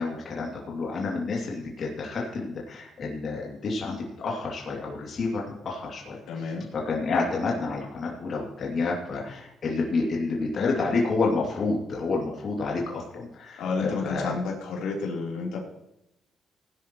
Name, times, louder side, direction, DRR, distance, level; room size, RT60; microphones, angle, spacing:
voice 1, 0.0-6.3 6.7-14.3, left 3 dB, 55° left, -3 dB, 2.7 m, -29 dB
voice 2, 6.3-6.7 13.6-15.6, left 4 dB, 85° left, -2 dB, 3.7 m, -30 dB
18.0 x 11.0 x 3.1 m, 0.83 s
cardioid pair, 90°, 0 cm